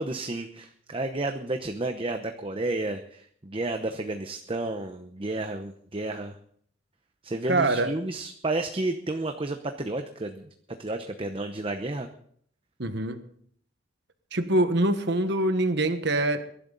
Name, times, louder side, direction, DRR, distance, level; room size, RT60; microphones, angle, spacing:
voice 1, 0.0-6.4 7.2-10.5 10.8-12.1, right 2 dB, 30° right, 6 dB, 0.8 m, -31 dB
voice 2, 7.5-7.9 12.8-13.2 14.3-16.4, right 1 dB, 60° right, 9 dB, 1.4 m, -24 dB
22.5 x 11.5 x 4.0 m, 0.64 s
head